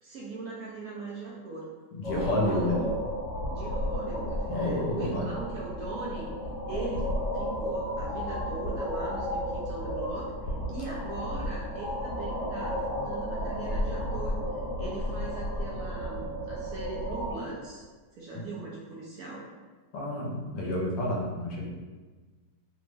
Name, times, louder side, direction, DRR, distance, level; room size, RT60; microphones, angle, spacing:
voice 1, 0.0-1.7 2.0-2.9 3.5-6.3 6.7-7.1 7.3-17.8 18.1-19.4, right 3 dB, 70° right, -4 dB, 0.9 m, -40 dB
voice 2, 1.9-3.0 4.5-5.3 18.3-18.4 19.9-21.7, left 1 dB, 75° left, -2 dB, 1.2 m, -30 dB
sound 1, 2.0-17.4, equal, 50° left, 1.4 m, -33 dB
3.4 x 2.1 x 3.2 m, 1.3 s
omnidirectional pair, 1.9 m